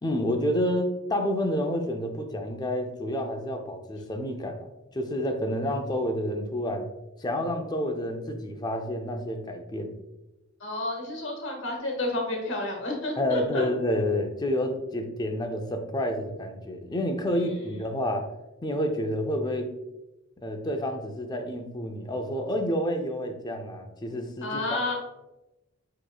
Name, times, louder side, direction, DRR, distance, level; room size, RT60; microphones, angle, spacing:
voice 1, 0.0-6.9 7.2-10.0 13.2-18.3 18.6-19.7 20.4-24.8, left 1 dB, 20° left, 5 dB, 0.4 m, -29 dB
voice 2, 10.6-13.7 17.3-17.8 24.4-24.9, left 2 dB, 60° left, 1 dB, 1.1 m, -31 dB
6.8 x 3.1 x 2.3 m, 0.99 s
head